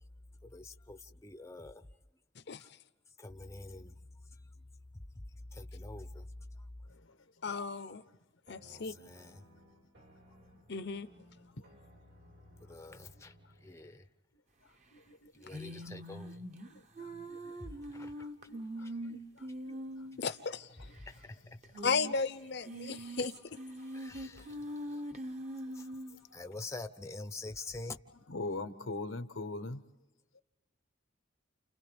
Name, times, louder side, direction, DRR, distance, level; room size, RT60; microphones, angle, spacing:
voice 1, 0.4-1.9 2.6-2.7 3.2-4.5 5.1-5.2 5.5-6.3 6.6-6.7 8.6-9.4 12.6-13.3 13.6-14.1 15.3-16.5 17.6-18.3 18.8-19.2 21.1-21.6 23.8-25.0 25.7-25.9 26.3-28.0, left 2 dB, 15° left, 0.7 m, -46 dB
voice 2, 2.4-2.7 7.4-8.0 8.5-8.9 10.7-11.1 20.2-20.7 21.8-23.6, left 4 dB, 55° left, 0.7 m, -35 dB
sound 1, 8.5-14.0, equal, 70° right, 4.5 m, -60 dB
voice 3, 14.9-15.6 16.7-20.1 24.0-24.5 25.4-25.8 26.1-26.2 28.3-29.8 30.3-30.4, left 2 dB, 90° left, 1.1 m, -44 dB
sound 2, 15.5-20.4 20.6-20.7 21.0-21.1 21.6-22.2 22.5-26.2, right 1 dB, 35° right, 1.1 m, -43 dB
30.0 x 29.5 x 3.5 m
head